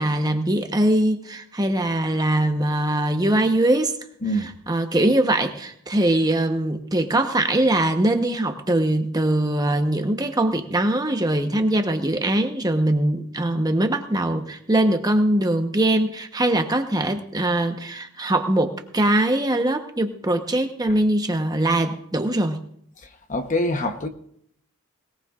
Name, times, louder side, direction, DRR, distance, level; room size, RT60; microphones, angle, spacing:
voice 1, 0.0-4.0 4.7-22.6, right 1 dB, 15° right, 1.0 m, -22 dB
voice 2, 23.0-24.1, left 1 dB, 35° left, 1.0 m, -25 dB
20.5 x 19.0 x 2.5 m
head